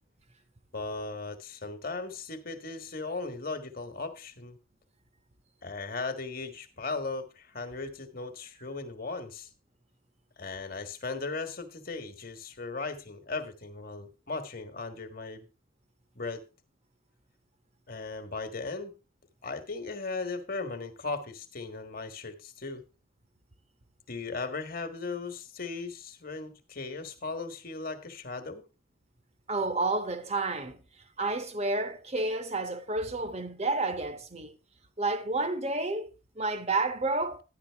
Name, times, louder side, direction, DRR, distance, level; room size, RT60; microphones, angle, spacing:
voice 1, 0.7-4.6 5.6-9.5 10.4-15.5 16.1-16.4 17.9-18.9 19.4-22.8 24.1-28.6, left 3 dB, 45° left, 1.5 m, -37 dB
voice 2, 29.5-30.8 31.2-34.6 35.0-37.4, right 2 dB, 30° right, 1.1 m, -30 dB
12.0 x 10.5 x 3.4 m
head